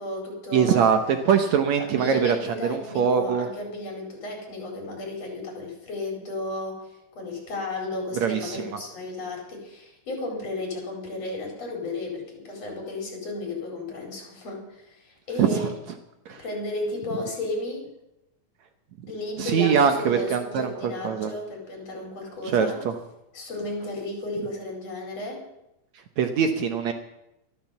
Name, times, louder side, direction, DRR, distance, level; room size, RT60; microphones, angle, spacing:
voice 1, 0.0-0.9 1.8-15.7 16.3-17.9 19.1-22.8 23.3-25.4, left 2 dB, 50° left, 1 dB, 5.4 m, -33 dB
voice 2, 0.5-2.4 2.6-3.5 8.2-8.8 15.4-15.7 16.3-16.4 19.4-21.3 22.5-22.9 26.2-26.9, right 7 dB, 65° right, 7 dB, 2.1 m, -23 dB
13.5 x 12.5 x 7.2 m, 0.87 s
omnidirectional pair, 3.7 m